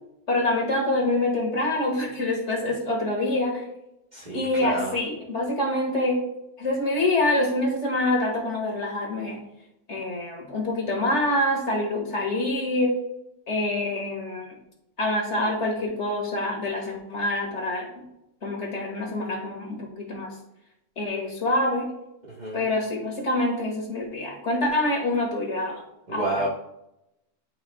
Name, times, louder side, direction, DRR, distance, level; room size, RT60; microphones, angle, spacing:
voice 1, 0.3-3.6 4.3-6.2 6.6-9.4 9.9-13.0 13.5-14.6 15.0-18.0 18.4-20.3 21.0-21.9 22.5-25.8 26.1-26.3, left 1 dB, 70° left, 0 dB, 2.2 m, -26 dB
voice 2, 4.1-5.0 22.3-22.7 26.1-26.5, right 2 dB, 35° right, -6 dB, 1.4 m, -30 dB
12.5 x 5.1 x 2.3 m, 0.85 s
omnidirectional pair, 1.3 m